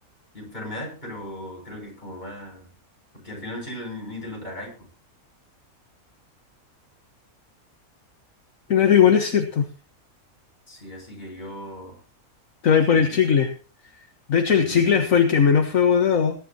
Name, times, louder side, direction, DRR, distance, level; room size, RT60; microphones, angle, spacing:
voice 1, 0.3-2.7 3.2-4.7 10.7-12.0 12.9-13.2 14.6-14.8, left 1 dB, 30° left, 0 dB, 6.4 m, -37 dB
voice 2, 8.7-9.7 12.6-13.5 14.3-16.3, left 7 dB, 65° left, 6 dB, 1.7 m, -18 dB
21.5 x 10.5 x 2.9 m, 0.36 s
omnidirectional pair, 1.5 m